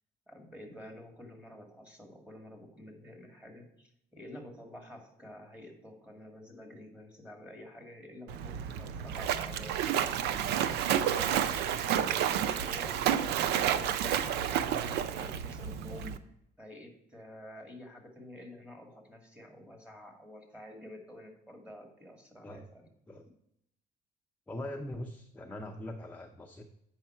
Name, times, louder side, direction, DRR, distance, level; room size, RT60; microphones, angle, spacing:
voice 1, 0.3-10.8 11.1-16.2 16.6-22.9, left 1 dB, 5° right, 2 dB, 2.0 m, -49 dB
Splash splatter, 8.3-16.2, right 9 dB, 85° right, 0.5 m, -30 dB
voice 2, 24.5-26.6, left 1 dB, 10° left, 3 dB, 0.6 m, -41 dB
8.3 x 5.6 x 4.4 m, 0.78 s
cardioid pair, 110°, 17 cm